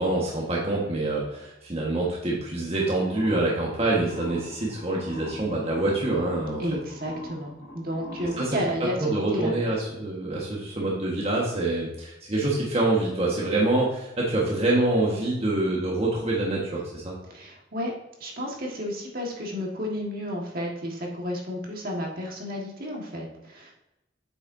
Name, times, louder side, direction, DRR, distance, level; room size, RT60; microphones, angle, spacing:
voice 1, 0.0-6.6 8.4-8.6 9.0-17.1, right 2 dB, 35° right, -4 dB, 1.4 m, -26 dB
sound 1, 2.7-9.3, left 1 dB, 85° left, 2.1 m, -43 dB
voice 2, 6.6-9.0 9.3-9.5 17.3-17.9 18.2-23.7, equal, 50° right, -1 dB, 1.6 m, -32 dB
8.3 x 6.8 x 2.7 m, 0.92 s
head